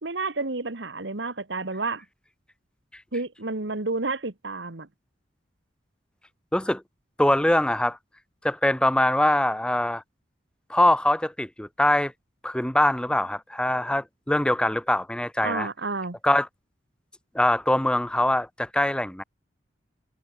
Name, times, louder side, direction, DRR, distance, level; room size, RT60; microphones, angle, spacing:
voice 1, 0.0-2.0 3.1-4.9 15.4-16.2, right 3 dB, 70° right, 1.6 m, -30 dB
voice 2, 6.5-6.8 7.2-8.0 8.4-10.0 10.7-12.1 12.4-15.7 16.2-16.5 17.3-19.2, left 1 dB, 5° left, 0.5 m, -23 dB
head